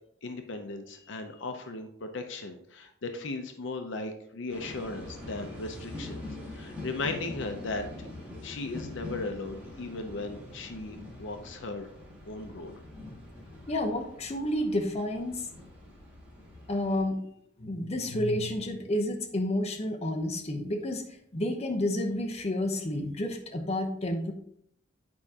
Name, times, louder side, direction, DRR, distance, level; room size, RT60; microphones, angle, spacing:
voice 1, 0.2-7.8 8.4-11.9 12.2-12.7, left 3 dB, 65° left, 5 dB, 0.7 m, -37 dB
sound 1, 4.5-17.0, left 1 dB, 5° right, 2.1 m, -44 dB
voice 2, 13.7-15.5 16.7-17.2 17.6-21.0 21.3-24.3, left 1 dB, 35° left, 3 dB, 0.8 m, -30 dB
8.5 x 4.8 x 2.8 m, 0.73 s
head